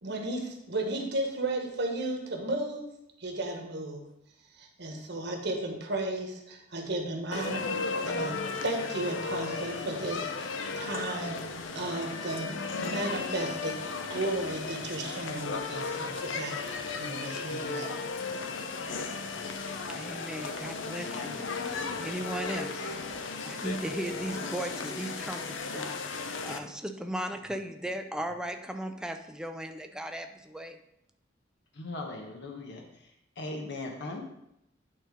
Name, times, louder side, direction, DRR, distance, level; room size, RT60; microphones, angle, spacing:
voice 1, 0.0-2.8 3.2-4.0 4.6-7.7 8.0-8.3 8.6-11.4 11.7-13.7 14.1-17.9, right 2 dB, 65° right, 2 dB, 1.4 m, -34 dB
sound 1, 7.3-26.6, left 4 dB, 90° left, 0.7 m, -35 dB
voice 2, 19.9-21.7 22.0-25.4 25.7-26.0 26.4-30.8, right 1 dB, 5° right, 6 dB, 0.5 m, -37 dB
voice 3, 31.7-33.1 33.4-34.2, left 2 dB, 65° left, 2 dB, 1.0 m, -39 dB
8.8 x 3.9 x 5.1 m, 0.81 s
head